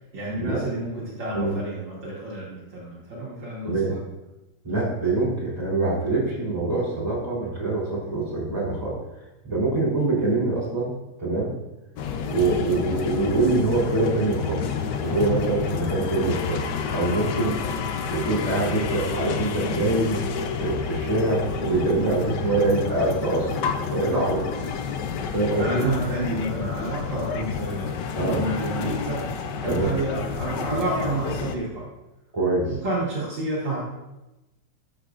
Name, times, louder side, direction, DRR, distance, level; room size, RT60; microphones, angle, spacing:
voice 1, 0.1-4.0 25.6-29.2 29.6-31.8 32.7-33.8, right 2 dB, 55° right, -6 dB, 2.1 m, -30 dB
voice 2, 4.6-11.6 12.3-14.6 15.0-16.6 16.9-17.6 18.1-23.5 23.9-24.4 25.3-25.9 28.1-28.4 29.7-29.9 32.3-32.7, right 2 dB, 10° right, -7 dB, 3.0 m, -24 dB
sound 1, 12.0-31.6, left 6 dB, 70° left, 1.0 m, -29 dB
12.5 x 5.7 x 2.5 m, 0.99 s
omnidirectional pair, 2.4 m